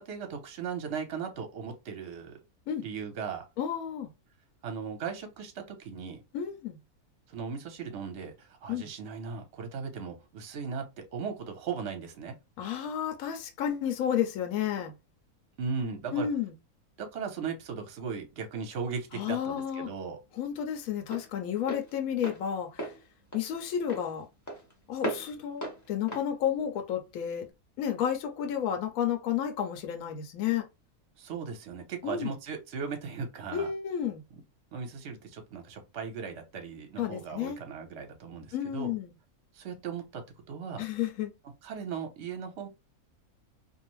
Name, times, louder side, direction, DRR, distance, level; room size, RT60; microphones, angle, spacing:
voice 1, 0.0-2.4 2.8-3.5 4.6-6.2 7.3-12.4 15.6-16.3 17.0-20.2 31.2-33.7 34.7-38.9 39.5-40.8 41.6-42.7, right 6 dB, 55° right, 0.9 m, -37 dB
voice 2, 3.6-4.1 6.3-6.8 8.7-8.9 12.6-14.9 16.1-16.5 19.1-19.9 20.3-22.9 23.3-24.3 24.9-27.5 27.8-30.7 32.0-32.3 33.5-34.2 37.0-37.6 38.5-39.1 40.8-41.3, left 9 dB, 75° left, 1.0 m, -31 dB
Walk footsteps, 18.8-27.5, right 1 dB, 20° left, 0.6 m, -41 dB
2.6 x 2.0 x 2.9 m
omnidirectional pair, 1.6 m